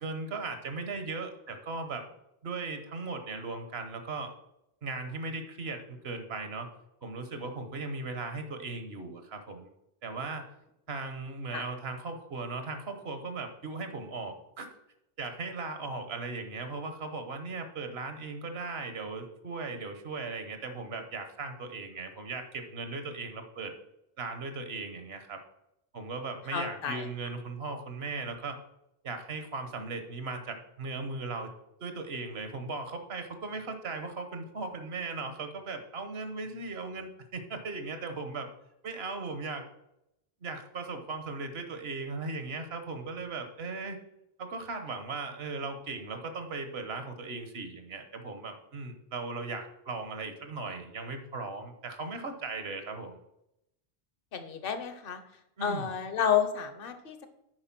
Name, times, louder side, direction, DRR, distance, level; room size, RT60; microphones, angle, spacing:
voice 1, 0.0-2.0 2.4-4.3 4.8-6.7 7.0-9.7 10.0-10.5 10.9-14.7 15.2-23.7 24.2-25.4 25.9-28.6 29.0-31.5 31.8-38.5 38.8-39.7 40.4-44.0 44.4-53.2 55.6-55.9, right 3 dB, 85° right, 7 dB, 1.3 m, -38 dB
voice 2, 26.5-27.1 54.3-55.2 55.6-57.3, left 8 dB, 65° left, 9 dB, 1.0 m, -30 dB
9.6 x 4.4 x 5.9 m, 0.84 s
omnidirectional pair, 1.0 m